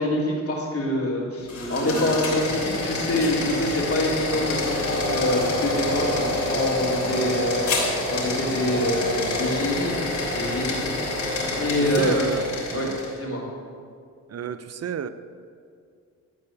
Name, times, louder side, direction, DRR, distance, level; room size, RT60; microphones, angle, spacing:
voice 1, 0.0-7.6 8.1-10.0 10.3-10.8 11.5-12.2 12.7-12.9 13.2-13.4, left 1 dB, 45° left, -3 dB, 3.2 m, -25 dB
sound 1, 1.4-13.2, left 2 dB, 65° left, 3.3 m, -27 dB
voice 2, 7.0-7.5 8.6-8.9 11.8-12.4 12.7-13.0 14.3-15.1, right 8 dB, 50° right, 12 dB, 0.6 m, -31 dB
12.5 x 4.7 x 8.4 m, 2.2 s
cardioid pair, 70°, 32 cm